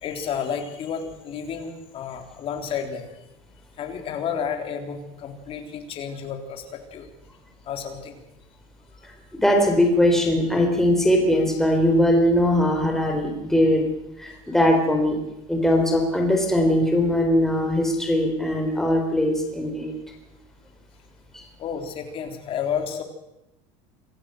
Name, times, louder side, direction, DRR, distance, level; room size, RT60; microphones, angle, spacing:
voice 1, 0.0-3.1 3.8-7.1 7.7-8.2 21.6-23.0, left 7 dB, 35° left, 5 dB, 3.7 m, -31 dB
voice 2, 9.3-13.9 14.2-15.2 15.5-19.9 21.3-21.4, left 1 dB, 5° left, 2 dB, 4.2 m, -20 dB
27.0 x 15.5 x 7.9 m, 0.90 s
supercardioid pair, 145°, 16 cm